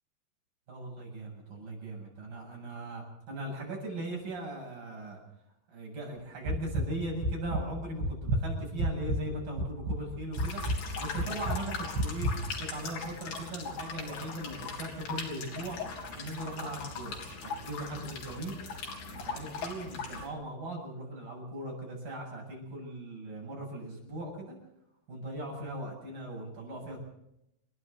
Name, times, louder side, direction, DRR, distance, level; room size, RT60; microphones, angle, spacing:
voice 1, 0.7-5.2 5.7-10.6 11.0-12.3 12.6-15.8 16.1-17.2 17.4-18.6 19.1-24.6 25.1-27.0, right 1 dB, 55° right, -1 dB, 9.5 m, -39 dB
sound 1, 6.5-6.9 7.2-7.6 8.0-9.2 9.6-10.0 10.4-10.8 11.2-11.6 12.0-12.3, right 1 dB, 75° right, 4.2 m, -29 dB
sound 2, 10.3-20.3, left 4 dB, 70° left, 5.4 m, -40 dB
29.5 x 11.5 x 8.3 m, 0.82 s
omnidirectional pair, 4.9 m